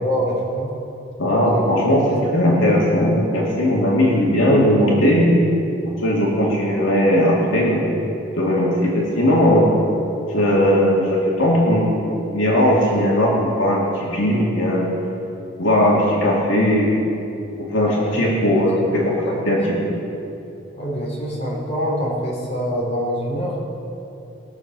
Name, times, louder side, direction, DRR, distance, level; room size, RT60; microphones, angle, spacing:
voice 1, 0.0-0.7 1.5-1.6 2.1-2.2 18.2-19.0 19.3-19.4 20.8-23.6, equal, 35° left, -5 dB, 3.6 m, -25 dB
voice 2, 1.2-2.0 2.3-5.3 6.0-8.0 8.4-9.7 10.3-14.9 15.6-16.9 17.7-19.9, equal, 75° left, -5 dB, 2.4 m, -18 dB
20.5 x 7.2 x 6.1 m, 2.8 s
head